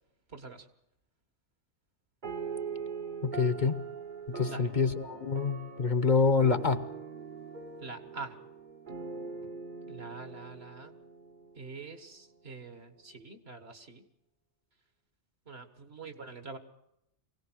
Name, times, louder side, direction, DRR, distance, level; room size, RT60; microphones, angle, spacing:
voice 1, 0.3-0.7 4.4-4.7 7.8-8.4 9.9-10.9 11.6-14.0 15.5-16.6, right 4 dB, 60° right, 8 dB, 2.1 m, -45 dB
sound 1, 2.2-12.0, right 5 dB, 45° right, 1.2 m, -42 dB
voice 2, 3.2-3.9 4.3-6.8, left 4 dB, 45° left, 12 dB, 1.0 m, -27 dB
24.0 x 18.0 x 6.3 m, 0.80 s
omnidirectional pair, 1.2 m